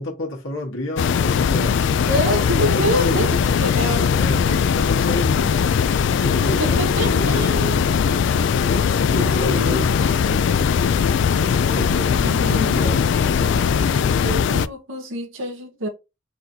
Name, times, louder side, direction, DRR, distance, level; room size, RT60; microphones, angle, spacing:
voice 1, 0.0-1.8 2.6-5.7 6.2-8.3 8.6-10.7 11.4-13.7, left 1 dB, 85° left, 1.3 m, -30 dB
sound 1, 1.0-14.7, left 6 dB, 65° left, 0.3 m, -19 dB
voice 2, 2.1-4.1 6.6-7.8 9.1-9.9 12.1-13.0 14.2-15.9, right 1 dB, 85° right, 1.2 m, -26 dB
4.1 x 2.7 x 4.2 m
head